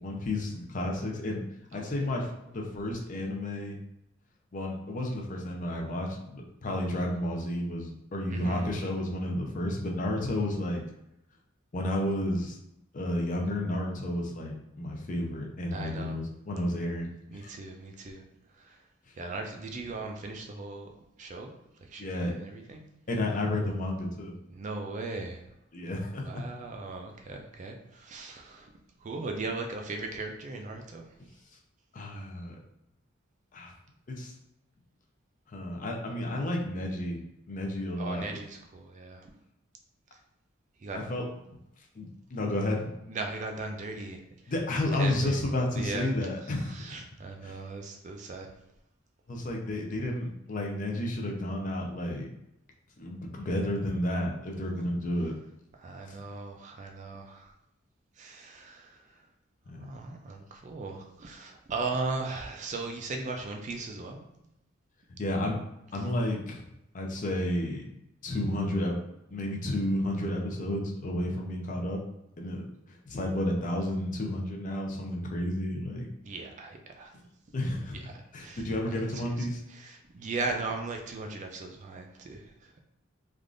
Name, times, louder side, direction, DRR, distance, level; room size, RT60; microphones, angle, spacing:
voice 1, 0.0-1.4 1.7-3.8 4.5-10.8 11.7-12.6 12.9-17.5 22.0-22.3 23.1-24.3 25.7-26.4 31.9-32.6 33.5-33.7 34.1-34.3 35.5-37.2 37.5-38.2 40.9-41.2 42.0-42.9 44.5-46.8 47.4-47.6 49.3-52.3 53.0-55.3 59.7-59.9 65.2-65.6 65.9-66.6 66.9-67.8 68.2-69.0 69.3-72.0 72.4-72.6 72.9-76.1 77.5-78.0 78.3-79.6, left 1 dB, 40° left, 0 dB, 0.5 m, -31 dB
voice 2, 1.7-2.2 8.3-8.7 15.7-16.2 17.3-18.2 18.5-18.9 19.2-20.9 21.2-22.8 24.5-25.4 26.2-28.7 29.0-31.0 38.0-39.3 40.1-40.2 40.8-41.0 43.1-44.5 44.9-45.4 45.7-46.1 46.4-48.5 55.8-57.6 58.1-59.3 59.7-64.2 66.0-66.1 76.2-77.1 77.9-82.8, right 3 dB, 35° right, 3 dB, 0.4 m, -38 dB
3.4 x 2.4 x 2.4 m, 0.84 s
head